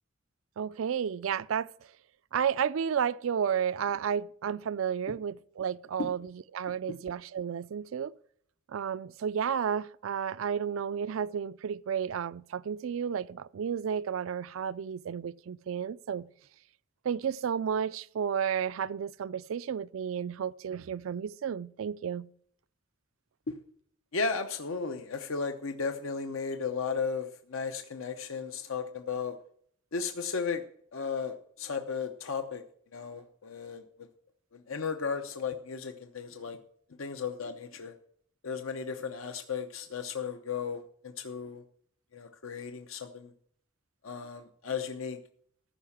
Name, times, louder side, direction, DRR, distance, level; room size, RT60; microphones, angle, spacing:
voice 1, 0.6-1.7 2.3-8.1 8.7-16.3 17.0-22.3, right 7 dB, 70° right, 0.4 m, -32 dB
voice 2, 24.1-29.4 29.9-30.6 30.9-32.6 32.9-33.8 34.5-36.6 37.0-37.9 38.4-41.6 42.1-43.3 44.0-45.2, left 5 dB, 75° left, 0.8 m, -35 dB
14.0 x 5.7 x 7.2 m
head